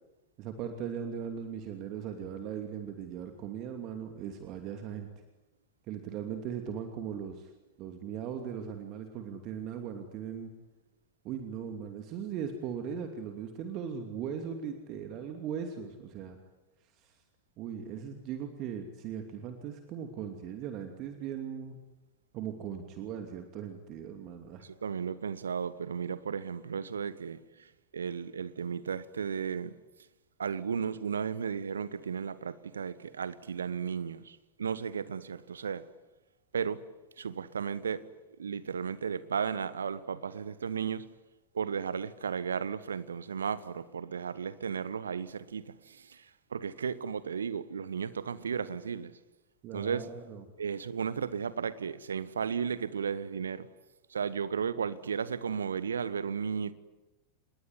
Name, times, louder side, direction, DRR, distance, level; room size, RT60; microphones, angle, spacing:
voice 1, 0.4-5.1 5.9-7.5 7.8-10.5 11.2-16.4 17.0-17.1 17.6-21.8 22.3-24.6 49.6-50.4, right 8 dB, 40° right, 2.7 m, -39 dB
voice 2, 24.6-27.4 27.9-29.7 30.4-35.9 36.5-36.8 37.2-38.1 38.4-41.1 41.5-46.2 46.5-49.1 49.7-50.1 50.6-53.7 54.1-56.7, right 6 dB, 70° right, 1.2 m, -34 dB
28.0 x 21.0 x 9.8 m
figure-of-eight pair, 90°, 0 cm